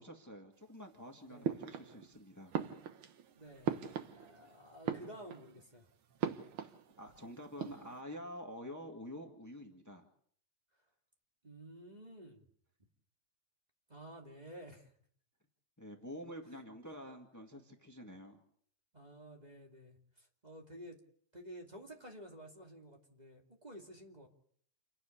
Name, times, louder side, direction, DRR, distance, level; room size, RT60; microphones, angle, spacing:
voice 1, 0.0-2.5 6.6-6.7 7.0-10.1 15.8-18.4, equal, 20° left, 3 dB, 0.5 m, -48 dB
sound 1, 1.4-2.2 2.5-4.5 4.7-5.6 6.2-7.2 7.4-8.0, right 8 dB, 75° right, 1.2 m, -39 dB
voice 2, 3.3-5.9 11.4-12.4 13.9-14.9 18.9-21.0 21.3-24.3, right 1 dB, 15° right, 1 dB, 2.0 m, -52 dB
28.5 x 11.5 x 8.4 m, 0.63 s
omnidirectional pair, 4.0 m